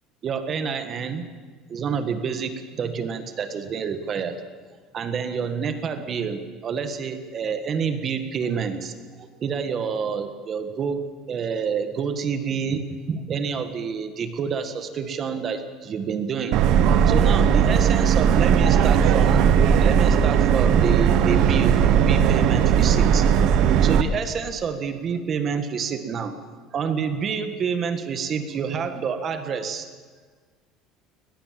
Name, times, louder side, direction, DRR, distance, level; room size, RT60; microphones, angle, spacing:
voice 1, 0.2-1.3 1.7-4.4 4.9-8.9 9.2-16.6 17.1-19.4 19.8-23.2 23.8-26.3 26.7-29.9, right 6 dB, 35° right, 9 dB, 1.6 m, -28 dB
Subway metro underground, 16.5-24.0, right 8 dB, 55° right, 1.2 m, -18 dB
22.5 x 20.0 x 7.6 m, 1.5 s
cardioid pair, 150°, 0 cm